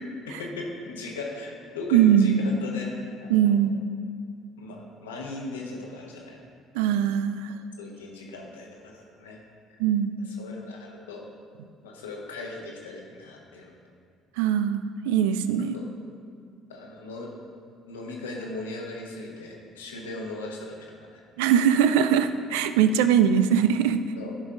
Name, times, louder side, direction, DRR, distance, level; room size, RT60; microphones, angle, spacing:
voice 1, 0.3-3.7 4.6-6.4 7.8-9.4 10.2-11.2 11.8-13.7 15.7-15.9 16.7-17.3 17.9-21.2 22.8-22.9 24.2-24.3, left 2 dB, 90° left, 0 dB, 1.0 m, -38 dB
voice 2, 1.9-2.4 3.3-3.8 6.7-7.5 9.8-10.2 14.4-15.8 21.4-24.0, right 9 dB, 80° right, 11 dB, 0.3 m, -21 dB
10.0 x 5.4 x 3.8 m, 2.3 s
hypercardioid pair, 60°, 0 cm